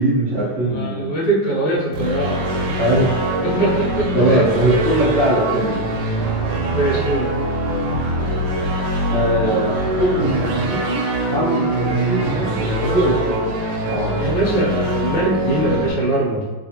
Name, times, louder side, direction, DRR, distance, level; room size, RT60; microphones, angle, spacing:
voice 1, 0.0-1.1 2.8-3.1 3.5-3.6 4.1-5.8 9.1-13.5 13.8-14.1, right 1 dB, 45° right, -11 dB, 0.7 m, -20 dB
voice 2, 0.6-2.8 3.4-4.4 6.7-7.3 14.1-16.5, right 1 dB, 70° left, -4 dB, 1.7 m, -22 dB
sound 1, 1.9-15.9, right 1 dB, 80° right, 1.5 m, -23 dB
3.3 x 3.2 x 2.8 m, 1.3 s
omnidirectional pair, 2.4 m